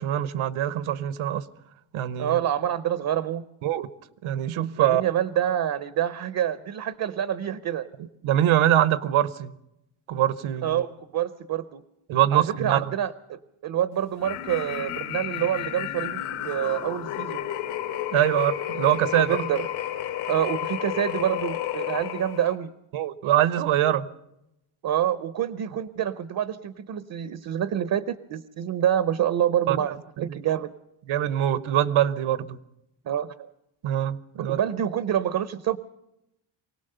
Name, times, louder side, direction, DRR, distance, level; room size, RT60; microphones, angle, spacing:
voice 1, 0.0-1.4 1.9-2.4 3.6-3.9 4.2-5.0 8.2-9.5 10.1-10.8 12.1-12.8 18.1-19.4 22.9-24.1 29.7-29.8 30.2-30.3 31.1-32.6 33.8-34.6, right 12 dB, 70° right, 16 dB, 0.9 m, -23 dB
voice 2, 2.2-3.4 4.8-7.9 10.6-11.8 12.3-17.5 19.3-19.7 20.3-22.7 24.8-30.7 33.0-33.5 34.4-35.8, right 10 dB, 45° right, 14 dB, 0.7 m, -27 dB
sound 1, 14.2-22.5, left 11 dB, 80° left, 2.4 m, -31 dB
24.5 x 18.0 x 6.7 m, 0.87 s
cardioid pair, 155°, 50 cm